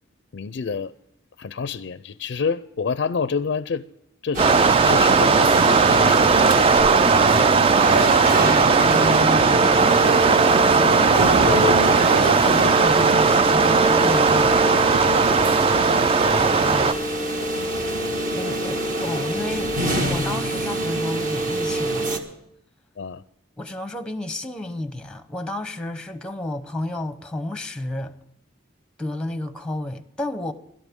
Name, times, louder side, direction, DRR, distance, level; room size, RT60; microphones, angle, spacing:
voice 1, 0.3-0.9 1.4-3.9 4.2-8.8 11.5-12.9 15.1-15.5 15.9-16.0 23.0-23.2, left 5 dB, 60° left, 0.4 m, -30 dB
sound 1, 4.3-22.2, right 1 dB, 45° right, 1.6 m, -26 dB
sound 2, 4.4-16.9, right 5 dB, 30° right, 0.4 m, -17 dB
voice 2, 8.2-11.7 12.0-14.6 16.6-17.1 18.3-22.2 23.6-28.1 29.0-30.5, left 1 dB, 5° left, 0.8 m, -32 dB
Female singing, 9.8-13.1 15.0-15.1, right 5 dB, 70° right, 0.7 m, -32 dB
17.0 x 12.5 x 3.6 m
head